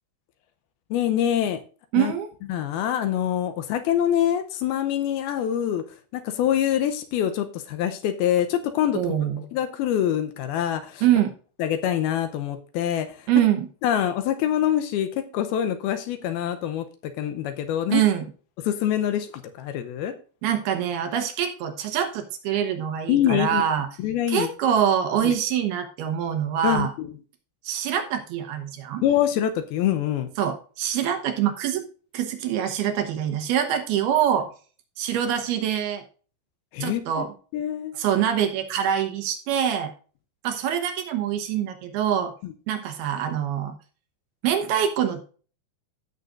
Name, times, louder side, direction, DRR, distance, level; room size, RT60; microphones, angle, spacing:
voice 1, 0.9-1.6 1.9-2.1 2.5-5.8 6.1-9.0 9.5-11.0 11.6-13.3 13.8-18.0 18.6-19.3 19.6-20.1 23.1-23.6 24.0-24.5 25.2-25.3 26.6-27.1 29.0-30.3 36.7-37.3 37.5-37.9 42.4-42.5, left 10 dB, 80° left, 8 dB, 2.5 m, -25 dB
voice 2, 1.9-2.3 8.9-9.4 11.0-11.3 13.3-13.7 17.9-18.3 20.4-23.9 24.3-26.9 27.6-29.0 30.4-31.8 32.1-34.5 35.0-36.0 36.8-37.3 37.9-39.9 40.4-42.3 42.7-43.8 44.4-45.2, right 9 dB, 75° right, 5 dB, 3.1 m, -24 dB
15.0 x 6.6 x 2.5 m, 0.38 s
omnidirectional pair, 4.7 m